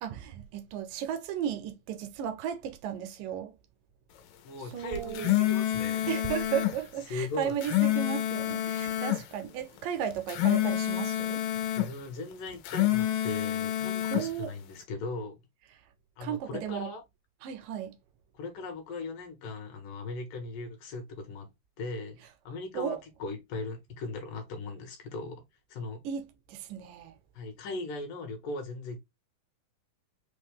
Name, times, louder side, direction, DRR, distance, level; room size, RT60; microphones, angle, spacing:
voice 1, 0.0-3.6 4.7-5.5 6.1-11.4 14.1-14.5 16.2-16.9 17.4-18.0 22.7-23.0 26.0-27.2, right 9 dB, 80° right, 2.0 m, -35 dB
voice 2, 4.4-6.1 7.1-7.6 11.7-15.4 16.2-17.0 18.3-21.5 21.8-22.2 22.5-25.4 25.7-26.0 27.3-29.0, left 3 dB, 75° left, 2.5 m, -38 dB
sound 1, 5.0-6.8 7.4-9.2 10.1-11.9 12.5-14.3, left 13 dB, 90° left, 2.5 m, -28 dB
5.5 x 2.2 x 3.4 m
omnidirectional pair, 4.1 m